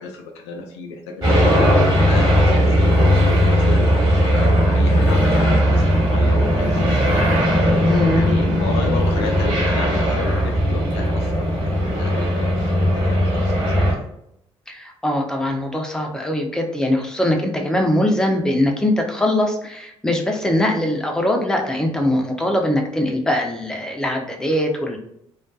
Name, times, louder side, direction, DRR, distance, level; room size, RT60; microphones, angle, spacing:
voice 1, 0.0-11.5 11.9-14.0, left 3 dB, 70° left, 2 dB, 0.4 m, -32 dB
sound 1, 1.2-13.9, equal, 25° right, 1.3 m, -17 dB
voice 2, 7.9-8.3 14.7-25.0, left 1 dB, 5° left, 1 dB, 0.5 m, -21 dB
2.3 x 2.2 x 2.5 m, 0.76 s
figure-of-eight pair, 45°, 15 cm